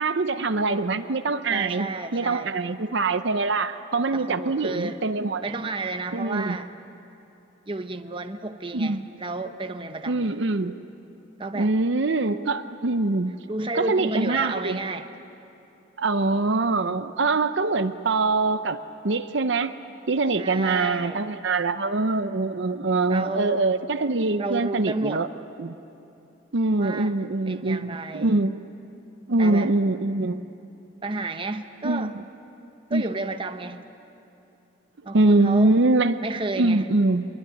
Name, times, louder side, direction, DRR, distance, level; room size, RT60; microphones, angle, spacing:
voice 1, 0.0-5.4 6.1-6.6 8.7-9.0 10.1-10.7 11.5-13.3 13.7-14.8 16.0-18.8 19.0-19.7 20.1-25.3 25.6-25.7 26.5-28.5 29.3-30.4 31.8-32.1 32.9-33.1 35.1-36.2 36.6-37.3, right 3 dB, 65° right, 10 dB, 0.7 m, -23 dB
voice 2, 1.5-2.5 4.1-5.0 5.4-6.7 7.7-10.3 11.4-11.7 13.5-15.1 20.3-21.2 23.1-23.6 24.4-25.2 26.8-27.2 27.5-28.4 29.4-29.7 31.0-32.1 32.9-33.9 35.0-35.7 36.2-36.9, right 2 dB, 25° right, 7 dB, 0.9 m, -31 dB
25.5 x 22.0 x 9.9 m, 2.9 s
head